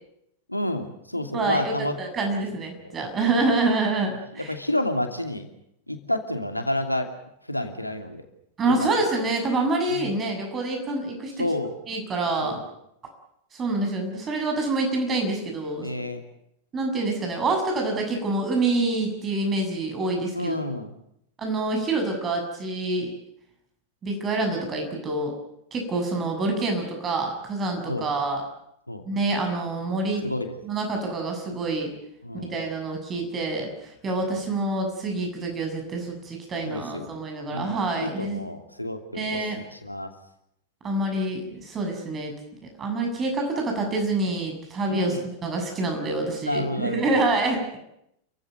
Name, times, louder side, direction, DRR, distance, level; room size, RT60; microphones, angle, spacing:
voice 1, 0.5-1.9 2.3-2.4 2.8-2.9 4.4-5.5 5.9-7.1 7.5-8.2 8.7-8.9 9.9-10.1 11.4-11.7 12.4-12.7 15.8-16.2 20.3-20.9 27.9-28.1 28.9-29.0 30.2-30.6 32.2-32.6 36.6-37.1 37.5-39.4 39.7-40.1 44.9-45.3 46.5-47.3, left 1 dB, 85° left, 6 dB, 2.8 m, -29 dB
voice 2, 1.3-4.5 8.6-11.4 11.9-12.6 13.5-15.9 16.7-20.6 21.4-23.1 24.0-25.3 25.7-28.4 29.1-30.2 30.6-31.9 32.4-33.7 34.0-38.4 39.1-39.6 40.8-42.3 42.8-47.6, right 2 dB, 25° right, 3 dB, 7.2 m, -26 dB
29.0 x 15.5 x 9.4 m, 0.78 s
figure-of-eight pair, 90°, 0 cm